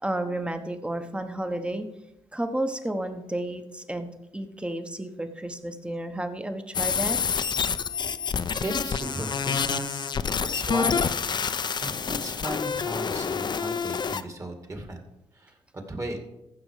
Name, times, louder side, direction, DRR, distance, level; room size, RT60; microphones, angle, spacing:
voice 1, 0.0-1.8 2.3-4.1 4.3-7.2, right 1 dB, 10° right, 8 dB, 1.2 m, -31 dB
sound 1, 6.7-14.2, left 6 dB, 45° left, 0.7 m, -28 dB
voice 2, 8.6-10.1 10.5-15.0 15.3-15.6 15.9-16.2, right 1 dB, 30° right, 4 dB, 2.3 m, -36 dB
15.0 x 6.3 x 4.9 m, 0.94 s
cardioid pair, 80°, 11 cm